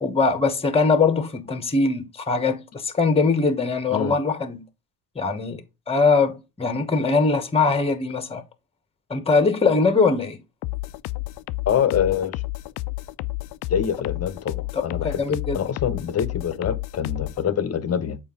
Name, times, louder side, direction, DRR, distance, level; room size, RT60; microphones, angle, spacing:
voice 1, 0.0-4.6 5.2-5.6 5.9-8.4 9.1-10.4 14.7-15.6, left 4 dB, 15° left, 1.1 m, -21 dB
sound 1, 10.6-17.4, left 20 dB, 60° left, 0.5 m, -31 dB
voice 2, 11.7-12.4 13.7-18.2, left 8 dB, 35° left, 0.9 m, -25 dB
6.9 x 4.4 x 3.8 m
hypercardioid pair, 60°, 45 cm